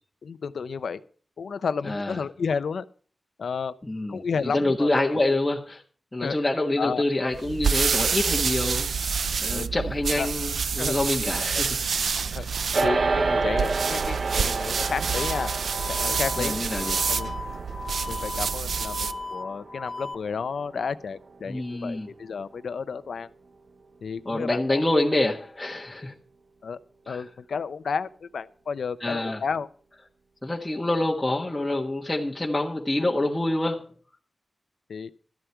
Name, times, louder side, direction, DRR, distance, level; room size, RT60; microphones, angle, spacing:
voice 1, 0.2-1.0 1.4-2.9 3.4-3.7 4.1-5.3 6.2-6.4 6.8-7.0 9.5-9.7 10.2-10.3 10.8-11.0 11.5-11.6 12.3-12.5 12.8-15.5 15.9-16.6 17.1-17.3 18.1-23.3 24.0-25.0 26.6-26.8 27.1-29.7 34.9-35.1, left 5 dB, 85° left, 0.7 m, -32 dB
voice 2, 1.8-2.2 3.8-5.8 6.1-8.9 9.4-11.8 12.3-12.4 16.4-17.1 21.4-22.1 24.2-26.1 27.1-27.2 29.0-29.4 30.4-33.9, left 2 dB, 15° left, 1.4 m, -26 dB
sound 1, 7.3-19.2, right 6 dB, 85° right, 0.5 m, -28 dB
sound 2, 12.7-22.2, right 3 dB, 50° right, 0.9 m, -31 dB
sound 3, 15.2-20.2, left 3 dB, 35° left, 0.7 m, -37 dB
13.0 x 11.5 x 4.6 m
wide cardioid pair, 130°, 0 cm